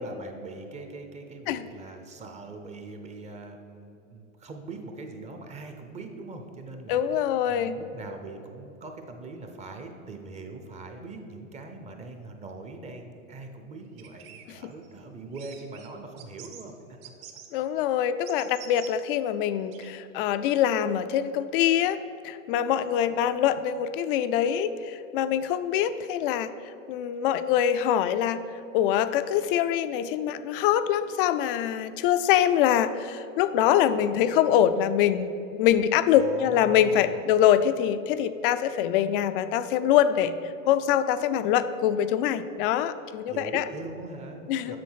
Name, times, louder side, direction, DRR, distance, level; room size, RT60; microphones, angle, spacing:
voice 1, 0.0-16.7 36.1-37.2 43.3-44.8, right 3 dB, 15° right, 5 dB, 0.6 m, -42 dB
voice 2, 6.9-7.8 17.5-26.5 26.9-28.4 28.7-40.4 40.7-43.6 44.5-44.8, left 10 dB, 45° left, 12 dB, 0.4 m, -24 dB
sound 1, 14.0-14.9 15.3-15.9 16.2-16.7 17.0-17.5 18.3-18.9 19.7-19.9, right 9 dB, 50° right, 1.0 m, -46 dB
7.6 x 6.0 x 5.6 m, 2.8 s
hypercardioid pair, 120°, 41 cm